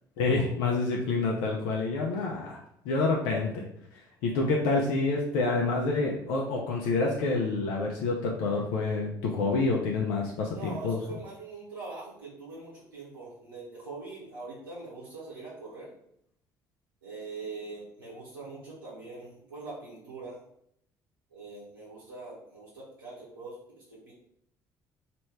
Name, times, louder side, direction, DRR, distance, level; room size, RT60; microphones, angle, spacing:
voice 1, 0.2-2.6 2.8-3.6 4.2-11.0, left 3 dB, 70° left, -2 dB, 0.7 m, -27 dB
voice 2, 10.5-15.9 17.0-20.4 21.3-24.1, right 3 dB, 90° right, -10 dB, 1.2 m, -43 dB
3.1 x 3.0 x 4.6 m, 0.72 s
hypercardioid pair, 50°, 11 cm